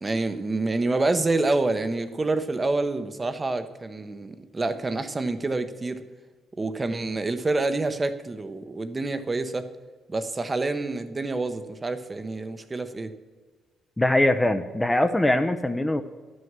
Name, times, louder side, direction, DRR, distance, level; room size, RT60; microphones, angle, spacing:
voice 1, 0.0-6.0 6.6-9.7 10.1-13.1, right 2 dB, 25° right, 10 dB, 0.8 m, -27 dB
voice 2, 14.0-16.0, left 1 dB, 10° left, 9 dB, 0.6 m, -22 dB
10.5 x 6.4 x 7.4 m, 1.4 s
cardioid pair, 90°, 0 cm